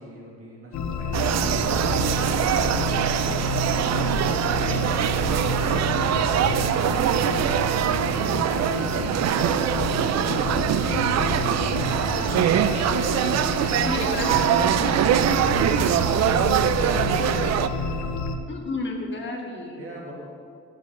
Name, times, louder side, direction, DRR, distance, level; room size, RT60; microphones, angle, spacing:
voice 1, 0.0-3.9 4.5-7.4 13.6-14.2 16.4-18.1 19.8-20.1, right 1 dB, 45° right, -3 dB, 2.4 m, -41 dB
sound 1, 0.7-18.4, left 3 dB, 70° left, 0.8 m, -29 dB
sound 2, 1.1-17.7, right 10 dB, 60° right, 0.5 m, -23 dB
voice 2, 4.9-5.3 8.2-8.4 12.3-15.9 18.5-19.8, left 2 dB, 40° left, -1 dB, 1.8 m, -34 dB
15.5 x 7.8 x 3.2 m, 2.2 s
cardioid pair, 90°, 30 cm